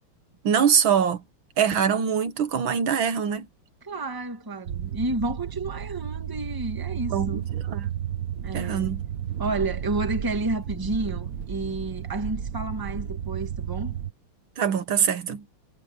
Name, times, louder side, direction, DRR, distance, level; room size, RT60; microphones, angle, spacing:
voice 1, 0.4-1.2 1.6-3.5 7.1-7.4 7.7-7.9 8.5-9.0 14.6-15.4, right 7 dB, 65° right, 1.9 m, -23 dB
voice 2, 3.8-7.5 8.4-9.0 9.4-13.9, right 2 dB, 10° right, 1.5 m, -31 dB
sound 1, 4.7-14.1, right 9 dB, 50° right, 1.3 m, -32 dB
omnidirectional pair, 2.4 m